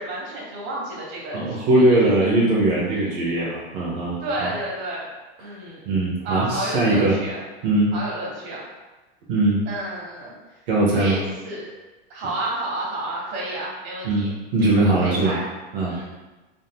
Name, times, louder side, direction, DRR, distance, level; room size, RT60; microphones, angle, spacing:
voice 1, 0.0-2.3 2.9-3.3 4.2-5.0 5.4-5.9 6.2-7.4 7.9-8.6 9.7-10.3 10.9-11.7 12.1-14.3 14.6-15.4 15.9-16.1, right 1 dB, 35° right, -4 dB, 1.1 m, -31 dB
voice 2, 1.3-4.5 5.4-5.5 5.9-7.2 7.6-7.9 9.3-9.6 10.7-11.2 14.0-15.4 15.7-16.0, right 2 dB, 65° right, -5 dB, 0.8 m, -20 dB
3.6 x 2.6 x 2.3 m, 1.1 s
supercardioid pair, 140°, 30 cm